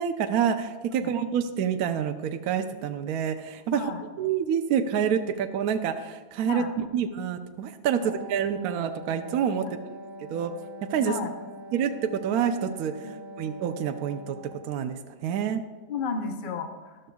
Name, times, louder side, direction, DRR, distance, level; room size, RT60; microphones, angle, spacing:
voice 1, 0.0-3.8 4.2-9.8 10.3-10.5 10.9-11.1 11.7-14.4 14.6-15.6, right 8 dB, 65° right, 7 dB, 1.0 m, -27 dB
voice 2, 3.7-4.0 6.4-6.7 7.9-8.1 9.6-9.7 11.0-11.3 13.0-13.1 15.9-17.0, left 5 dB, 45° left, 4 dB, 0.7 m, -33 dB
Wind instrument woodwind instrument, 8.0-14.8, right 1 dB, 85° right, 1.8 m, -43 dB
13.0 x 12.5 x 2.3 m, 1.3 s
omnidirectional pair, 2.0 m